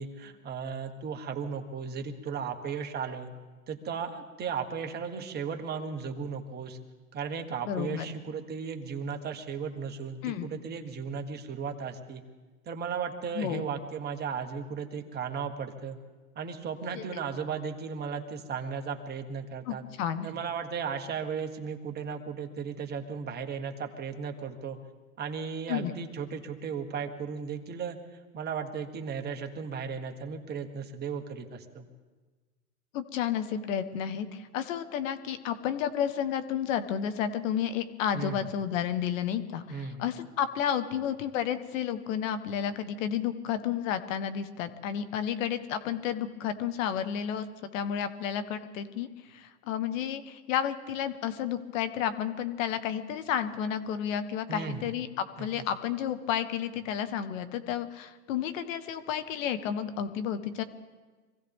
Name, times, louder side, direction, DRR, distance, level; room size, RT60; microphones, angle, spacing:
voice 1, 0.0-3.3 3.7-6.8 7.1-12.2 12.6-16.0 16.3-19.8 20.2-24.8 25.2-28.0 28.3-31.9 38.1-38.5 39.7-40.1 54.5-54.9 55.4-55.5, right 6 dB, 20° right, 5 dB, 1.4 m, -35 dB
voice 2, 7.6-8.1 10.2-10.5 13.3-13.6 16.9-17.0 19.7-20.3 25.7-25.9 32.9-60.6, left 9 dB, 50° left, 11 dB, 1.4 m, -31 dB
25.0 x 15.5 x 3.6 m, 1.3 s
hypercardioid pair, 135°, 48 cm